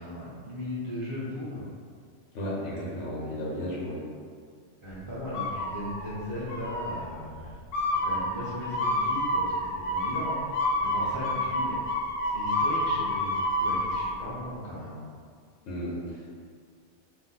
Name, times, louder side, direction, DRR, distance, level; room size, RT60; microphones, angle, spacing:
voice 1, 0.0-1.7 4.8-7.6 8.0-11.9 12.3-15.0, left 1 dB, 40° right, -9 dB, 0.5 m, -37 dB
voice 2, 2.3-4.0 15.7-16.4, equal, 80° left, -6 dB, 1.0 m, -34 dB
sound 1, 5.3-6.1 6.5-7.0 7.7-14.0, left 1 dB, 60° left, 0.7 m, -28 dB
2.4 x 2.2 x 3.9 m, 2.1 s
omnidirectional pair, 1.2 m